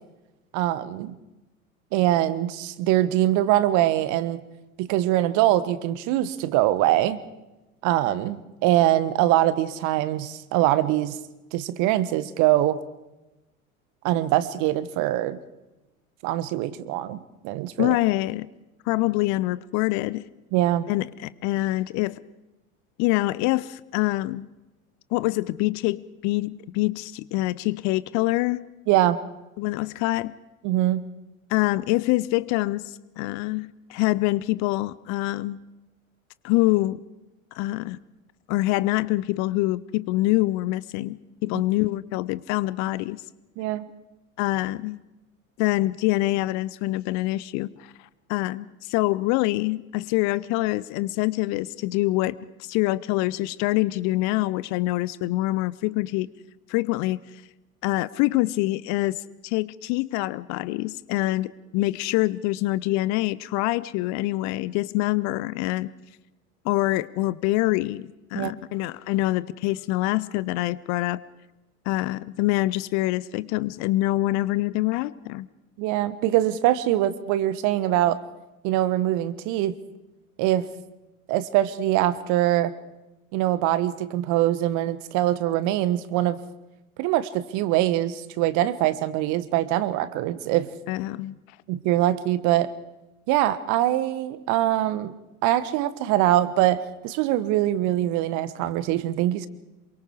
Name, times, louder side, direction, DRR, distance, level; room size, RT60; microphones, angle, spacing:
voice 1, 0.5-1.1 1.9-4.4 4.8-7.2 7.8-11.2 11.5-12.8 14.0-15.4 16.2-17.2 17.4-18.0 20.5-20.9 28.9-29.2 30.6-31.0 43.6-43.9 68.3-68.5 75.8-78.2 78.6-79.8 80.4-80.7 81.3-82.7 83.3-86.4 87.0-90.7 91.7-92.7 93.3-95.1 95.4-99.5, right 14 dB, 45° right, 16 dB, 1.5 m, -23 dB
voice 2, 17.8-18.5 18.9-20.3 20.9-22.2 23.0-24.5 25.1-28.6 29.6-30.3 31.5-35.6 36.4-37.0 37.5-38.0 38.5-43.2 44.4-45.0 45.6-47.9 48.3-56.3 56.7-57.2 57.8-65.9 66.6-71.2 71.9-75.5 90.9-91.4, left 18 dB, 40° left, 19 dB, 0.8 m, -25 dB
27.5 x 23.5 x 4.9 m, 1.0 s
figure-of-eight pair, 75°, 42 cm